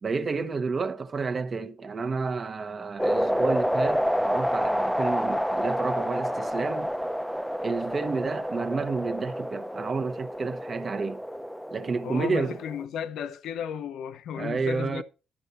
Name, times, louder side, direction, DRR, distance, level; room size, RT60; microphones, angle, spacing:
voice 1, 0.0-6.9 7.6-11.2 11.7-12.6 14.3-15.0, right 4 dB, 40° right, 1.0 m, -30 dB
sound 1, 3.0-12.8, equal, ahead, 0.7 m, -29 dB
voice 2, 12.0-15.0, left 8 dB, 80° left, 0.8 m, -34 dB
12.5 x 6.7 x 4.2 m
cardioid pair, 90°, 0 cm